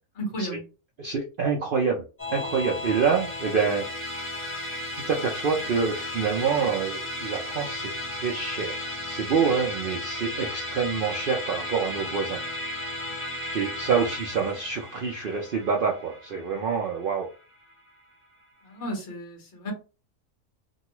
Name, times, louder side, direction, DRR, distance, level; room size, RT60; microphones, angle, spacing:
voice 1, 0.1-0.6 13.1-13.4 18.6-19.7, equal, 55° left, 1 dB, 1.4 m, -34 dB
voice 2, 1.0-2.0 2.3-3.9 5.0-7.9 8.2-8.8 9.1-12.4 13.5-17.3, right 6 dB, 65° right, 0 dB, 0.5 m, -26 dB
Musical instrument, 2.2-17.7, left 1 dB, 20° left, 0.3 m, -34 dB
3.0 x 2.3 x 2.9 m, 0.33 s
omnidirectional pair, 1.5 m